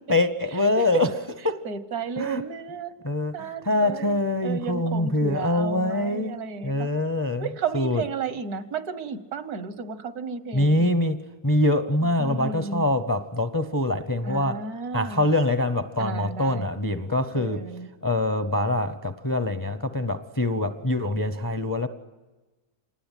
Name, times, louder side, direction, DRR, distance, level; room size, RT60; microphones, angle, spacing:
voice 1, 0.1-1.1 1.4-1.6 2.2-2.4 3.0-7.5 7.7-8.0 10.5-14.6 14.9-17.7 18.0-21.9, left 1 dB, 20° left, 0.5 m, -24 dB
voice 2, 0.6-1.0 1.7-2.9 3.3-4.2 4.4-6.9 7.4-10.9 12.0-12.8 14.2-15.2 16.0-16.7 17.4-17.9, right 5 dB, 80° right, 1.7 m, -33 dB
26.5 x 20.0 x 9.1 m
omnidirectional pair, 1.6 m